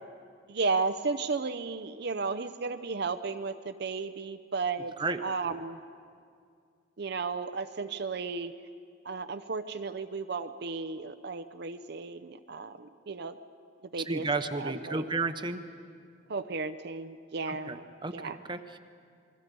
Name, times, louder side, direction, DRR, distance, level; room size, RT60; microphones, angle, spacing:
voice 1, 0.5-4.9 5.2-5.8 7.0-8.5 9.0-13.4 13.9-14.3 14.5-15.0 16.3-17.9 18.1-18.4, right 4 dB, 60° right, 9 dB, 0.6 m, -34 dB
voice 2, 14.1-15.6 17.5-18.8, right 3 dB, 25° right, 8 dB, 0.9 m, -33 dB
28.0 x 21.5 x 5.4 m, 2.3 s
head